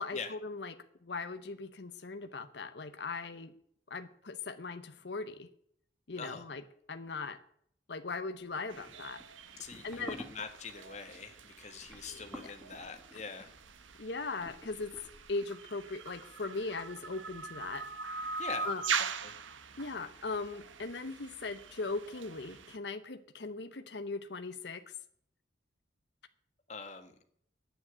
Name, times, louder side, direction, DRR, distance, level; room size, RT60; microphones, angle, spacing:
voice 1, 0.0-3.5 3.9-5.5 6.1-6.6 6.9-7.4 7.9-9.2 9.8-10.2 12.1-12.5 14.0-14.9 15.3-17.9 18.2-18.8 19.8-24.9, left 3 dB, 65° left, 9 dB, 0.8 m, -39 dB
voice 2, 6.1-6.4 9.6-13.5 18.4-18.7 19.2-19.3 26.7-27.1, left 5 dB, 35° left, 6 dB, 1.5 m, -43 dB
sound 1, 8.4-15.5, left 1 dB, ahead, 2.0 m, -51 dB
sound 2, 8.7-22.8, right 5 dB, 90° right, 1.0 m, -42 dB
10.0 x 9.1 x 9.3 m, 0.66 s
head